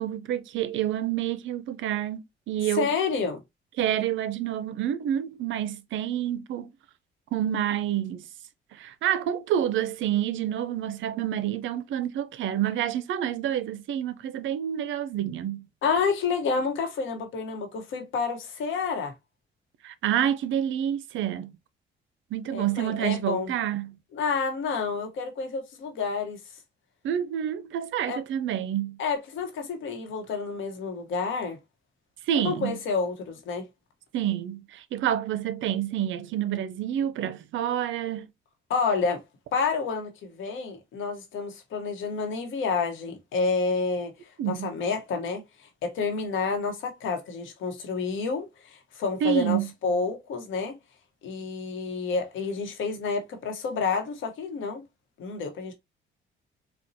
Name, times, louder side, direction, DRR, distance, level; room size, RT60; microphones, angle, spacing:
voice 1, 0.0-2.2 2.5-2.9 3.8-6.7 7.3-8.3 8.7-15.7 19.8-21.5 22.3-24.0 27.0-29.0 32.3-32.8 34.1-38.3 44.4-44.7 49.2-49.7, right 10 dB, 75° right, 0.5 m, -28 dB
voice 2, 2.7-3.4 15.8-19.1 22.5-23.5 24.1-26.4 28.1-28.2 29.0-31.6 32.4-33.7 38.7-39.2 39.5-44.1 44.5-50.8 51.2-54.8 55.2-55.7, left 5 dB, 80° left, 1.0 m, -29 dB
4.2 x 2.2 x 2.6 m
cardioid pair, 90°, 20 cm